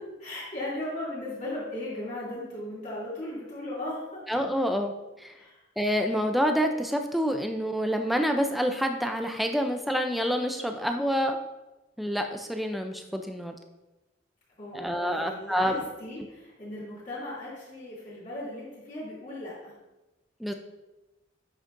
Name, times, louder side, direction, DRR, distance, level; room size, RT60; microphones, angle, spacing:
voice 1, 0.2-4.2 5.3-5.6 14.6-19.7, left 1 dB, 40° left, -9 dB, 2.7 m, -37 dB
voice 2, 4.3-4.9 5.2-5.3 5.8-11.4 12.0-13.5 14.7-15.8 20.4-20.5, equal, ahead, 5 dB, 0.4 m, -27 dB
9.7 x 6.3 x 2.6 m, 1.0 s
head